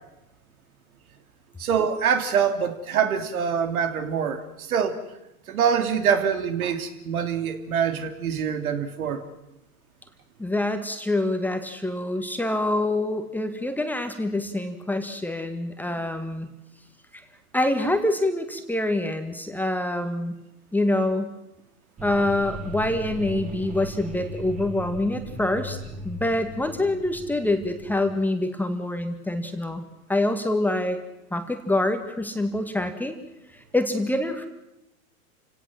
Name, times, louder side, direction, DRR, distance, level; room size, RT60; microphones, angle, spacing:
voice 1, 1.6-5.0 5.5-9.2, right 7 dB, 70° right, 8 dB, 3.2 m, -25 dB
voice 2, 10.4-16.5 17.5-20.3 20.7-21.3 22.0-25.8 26.0-29.8 30.1-31.0 31.3-33.2 33.7-34.5, left 1 dB, 5° left, 7 dB, 1.8 m, -26 dB
sound 1, 22.0-28.2, right 1 dB, 15° right, 3.3 m, -37 dB
28.5 x 17.5 x 7.7 m, 0.92 s
hypercardioid pair, 125°, 44 cm